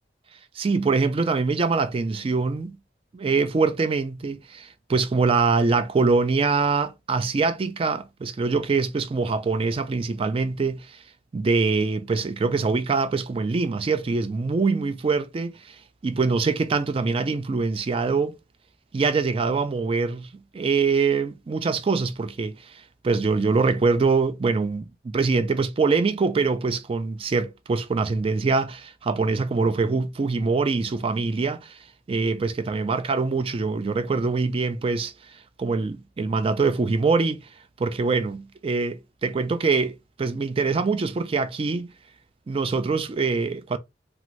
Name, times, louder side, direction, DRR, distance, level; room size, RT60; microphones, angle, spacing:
voice 1, 0.6-2.8 3.1-11.0 11.3-18.3 18.9-20.3 20.5-31.8 32.1-35.1 35.6-37.4 37.8-41.9 42.5-43.8, right 4 dB, 30° right, 0.3 m, -24 dB
2.6 x 2.5 x 3.0 m
head